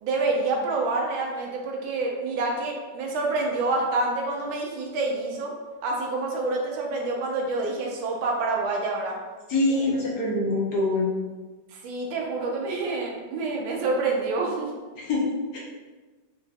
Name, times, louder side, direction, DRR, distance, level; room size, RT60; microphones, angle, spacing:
voice 1, 0.0-5.5 5.8-9.2 9.7-9.9 11.7-14.7, right 3 dB, 90° right, 0 dB, 1.4 m, -27 dB
voice 2, 9.5-11.1 15.0-15.2 15.5-15.6, left 2 dB, 65° left, -4 dB, 1.2 m, -24 dB
4.6 x 2.5 x 2.4 m, 1.3 s
omnidirectional pair, 2.1 m